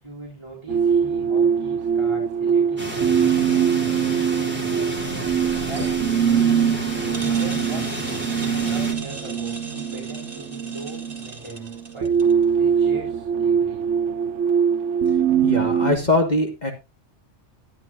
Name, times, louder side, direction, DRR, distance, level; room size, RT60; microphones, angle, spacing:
voice 1, 0.0-4.0 4.5-4.8 5.6-5.9 7.2-8.2 8.6-12.1 12.5-13.8, right 2 dB, 25° right, -4 dB, 4.6 m, -39 dB
sound 1, 0.7-16.0, right 7 dB, 85° right, 1.1 m, -22 dB
sound 2, 2.8-8.9, left 1 dB, 10° right, 3.5 m, -32 dB
sound 3, 5.0-12.4, right 3 dB, 50° right, 2.6 m, -40 dB
voice 2, 15.4-16.7, left 2 dB, 40° left, 3 dB, 1.8 m, -21 dB
12.0 x 12.0 x 2.6 m, 0.26 s
omnidirectional pair, 1.2 m